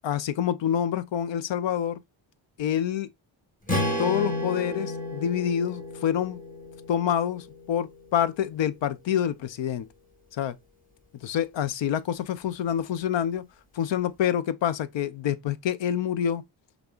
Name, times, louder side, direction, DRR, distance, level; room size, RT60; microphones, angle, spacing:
voice 1, 0.0-2.0 2.6-3.1 4.0-6.4 6.9-9.9 10.4-10.6 11.2-13.4 13.7-16.4, left 9 dB, 65° left, 0.6 m, -27 dB
Strum, 3.7-7.9, left 1 dB, 15° left, 1.6 m, -32 dB
5.2 x 3.5 x 2.4 m
cardioid pair, 105°, 48 cm